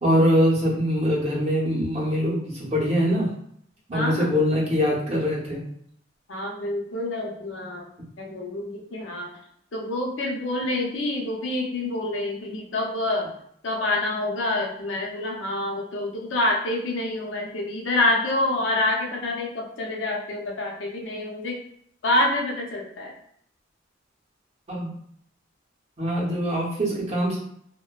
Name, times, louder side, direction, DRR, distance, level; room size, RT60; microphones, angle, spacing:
voice 1, 0.0-3.3 3.9-5.7 24.7-24.9 26.0-27.4, equal, 35° right, -4 dB, 0.7 m, -23 dB
voice 2, 3.9-4.3 6.3-7.9 8.2-9.3 9.7-13.3 13.6-21.6 22.0-23.1, left 2 dB, 75° left, -1 dB, 0.5 m, -27 dB
2.6 x 2.1 x 2.2 m, 0.68 s
head